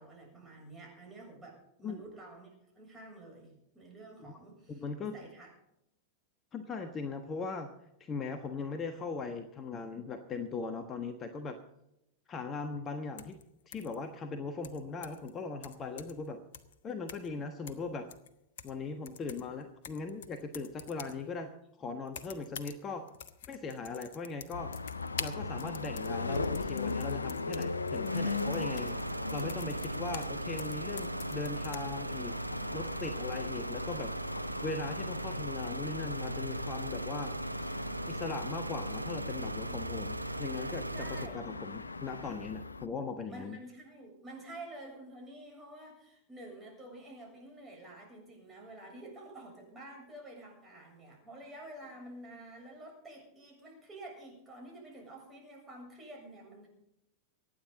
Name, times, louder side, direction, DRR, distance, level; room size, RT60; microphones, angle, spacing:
voice 1, 0.0-5.5 39.7-39.8 40.9-41.4 43.3-56.7, right 1 dB, 15° right, -1 dB, 7.3 m, -49 dB
voice 2, 4.7-5.1 6.5-7.7 8.0-11.6 12.3-13.4 13.7-16.4 16.8-18.1 18.6-21.5 21.8-23.0 23.5-24.7 25.2-29.0 29.3-32.3 32.7-34.1 34.6-37.3 38.1-43.6, left 4 dB, 25° left, 7 dB, 1.2 m, -39 dB
keyboard typing mac, 13.2-13.4 13.7-14.0 14.6-15.3 15.6-16.3 16.5-16.7 17.1-17.4 17.7-18.8 19.1-21.2 22.1-22.8 23.1-30.3 30.6-31.8, left 8 dB, 55° left, 1.1 m, -47 dB
sound 1, 24.5-42.9, left 3 dB, 80° left, 0.7 m, -39 dB
sound 2, 28.1-41.3, right 2 dB, 85° right, 0.7 m, -38 dB
24.5 x 9.5 x 3.9 m, 0.83 s
figure-of-eight pair, 90°, 0 cm